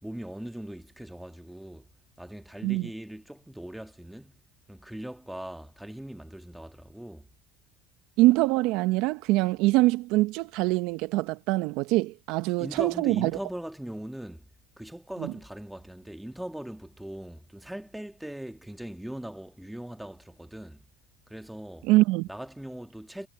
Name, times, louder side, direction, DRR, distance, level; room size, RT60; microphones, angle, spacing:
voice 1, 0.0-1.9 2.2-4.4 4.7-7.3 12.6-14.5 14.8-20.8 21.3-21.9 22.3-23.3, right 1 dB, 5° right, 2.0 m, -40 dB
voice 2, 8.2-13.3 15.2-15.3 21.9-22.3, right 19 dB, 65° right, 1.0 m, -24 dB
supercardioid pair, 95°, 0 cm